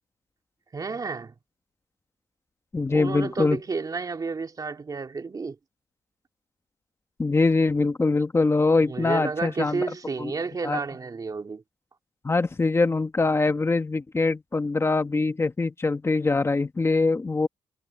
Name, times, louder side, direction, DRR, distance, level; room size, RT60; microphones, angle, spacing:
voice 1, 0.7-1.3 2.9-5.6 8.9-11.6, right 4 dB, 35° right, 2.6 m, -31 dB
voice 2, 2.7-3.6 7.2-9.9 10.2-10.3 10.6-10.8 12.2-17.5, left 3 dB, 25° left, 1.4 m, -23 dB
cardioid pair, 105°, 11 cm